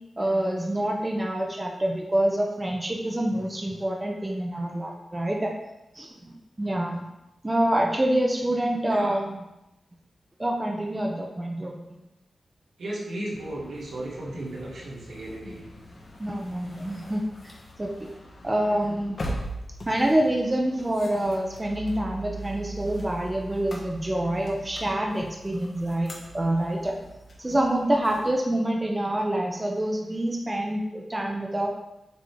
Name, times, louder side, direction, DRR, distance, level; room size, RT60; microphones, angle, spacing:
voice 1, 0.2-5.5 5.9-7.1 7.4-9.4 10.4-11.7 16.2-17.2 17.8-18.1 18.4-19.2 19.9-27.0 27.4-31.7, right 1 dB, 15° right, 0 dB, 0.6 m, -26 dB
voice 2, 12.8-15.7, right 1 dB, 85° right, -6 dB, 2.1 m, -35 dB
sound 1, 13.3-28.3, right 1 dB, 45° left, 1.1 m, -41 dB
7.5 x 3.6 x 3.6 m, 0.95 s
wide cardioid pair, 135°, 0 cm